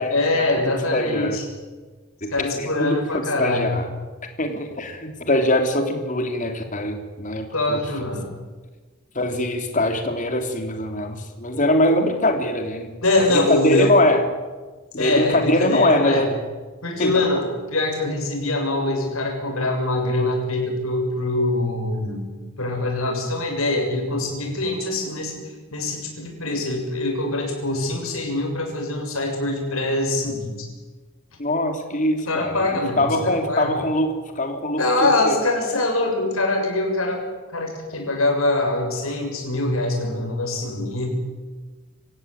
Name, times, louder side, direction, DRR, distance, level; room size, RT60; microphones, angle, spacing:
voice 1, 0.1-1.4 2.3-3.7 7.5-8.3 13.0-13.9 15.0-16.3 16.8-22.3 22.6-25.4 25.7-30.5 32.3-33.7 34.8-37.2 37.5-41.1, left 2 dB, 75° left, 2 dB, 7.1 m, -23 dB
voice 2, 0.7-1.4 2.2-3.8 4.4-7.8 9.1-14.2 14.9-16.4 17.0-17.1 31.4-34.8 35.2-35.4, left 1 dB, 35° left, 5 dB, 3.1 m, -22 dB
26.5 x 15.5 x 9.1 m, 1.3 s
head